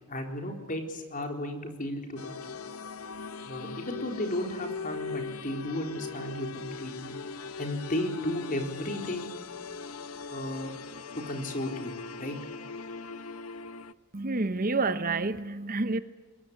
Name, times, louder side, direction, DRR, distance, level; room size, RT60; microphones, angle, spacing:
voice 1, 0.1-2.3 3.5-7.2 7.6-9.3 10.3-10.7 11.3-11.9 12.2-12.4, left 1 dB, 40° left, 4 dB, 4.2 m, -34 dB
sound 1, 2.2-13.9, left 4 dB, 75° left, 0.9 m, -40 dB
voice 2, 14.1-16.0, right 3 dB, 40° right, 12 dB, 0.9 m, -28 dB
23.0 x 21.0 x 10.0 m, 1.3 s
head